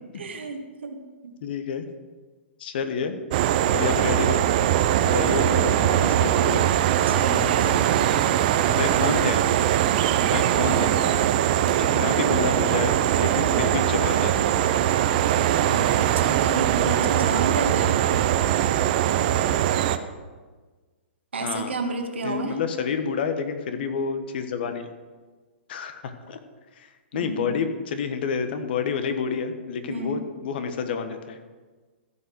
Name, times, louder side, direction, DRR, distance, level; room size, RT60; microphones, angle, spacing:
voice 1, 0.1-1.3 7.1-7.8 10.6-11.0 13.4-13.6 16.1-18.0 21.3-22.6 27.1-27.6 29.9-30.2, right 3 dB, 80° right, 4 dB, 1.6 m, -31 dB
voice 2, 1.4-1.8 2.6-3.1 3.7-4.4 5.0-6.7 7.1-7.8 8.7-9.4 10.2-10.9 11.4-14.4 15.7-15.9 21.4-21.7 22.2-24.9 25.7-26.4 26.8-31.4, left 6 dB, 60° left, 8 dB, 1.3 m, -29 dB
sound 1, 3.3-20.0, right 11 dB, 50° right, 0.7 m, -21 dB
14.0 x 5.8 x 6.3 m, 1.4 s
hypercardioid pair, 120°, 6 cm